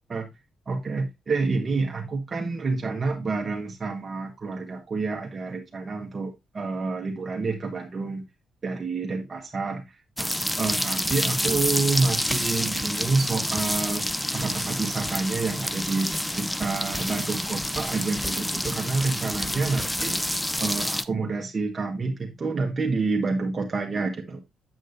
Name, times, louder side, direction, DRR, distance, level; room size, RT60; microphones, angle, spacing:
voice 1, 0.7-8.2 8.6-10.3 10.6-20.2 20.6-24.4, right 3 dB, 35° right, 1.5 m, -28 dB
sound 1, 10.2-21.0, left 1 dB, 5° left, 0.6 m, -28 dB
7.8 x 7.8 x 2.7 m
cardioid pair, 90°, 0 cm